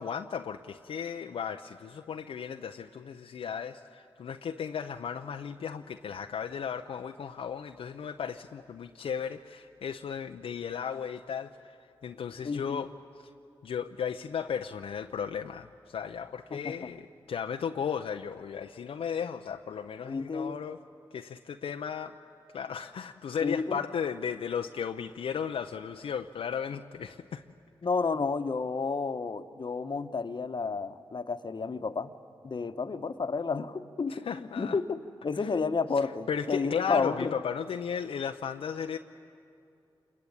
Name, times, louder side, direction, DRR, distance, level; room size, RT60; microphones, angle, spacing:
voice 1, 0.0-11.8 12.0-12.9 13.2-13.3 13.6-20.8 21.1-22.1 22.5-27.4 34.1-34.8 35.4-35.5 36.0-39.0, left 7 dB, 80° left, 5 dB, 0.6 m, -35 dB
voice 2, 12.4-12.8 16.5-16.8 20.1-20.6 23.4-23.8 27.8-32.1 32.4-37.3, left 4 dB, 55° left, 10 dB, 1.1 m, -31 dB
27.0 x 22.0 x 8.7 m, 2.6 s
supercardioid pair, 40°, 10 cm